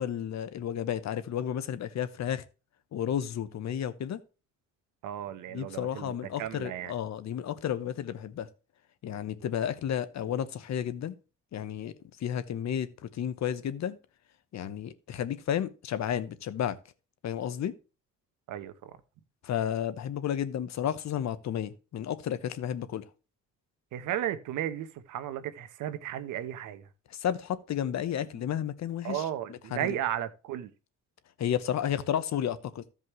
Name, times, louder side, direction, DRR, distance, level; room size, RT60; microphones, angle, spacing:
voice 1, 0.0-2.4 2.9-4.2 5.5-8.5 9.0-11.1 11.5-11.9 12.2-14.0 14.5-16.8 17.2-17.7 19.4-23.0 27.1-30.0 31.4-32.8, left 9 dB, 65° left, 1.1 m, -32 dB
voice 2, 5.0-6.9 18.5-19.0 23.9-26.9 29.0-30.7, right 11 dB, 90° right, 1.2 m, -34 dB
15.5 x 5.4 x 3.2 m
cardioid pair, 90°, 30 cm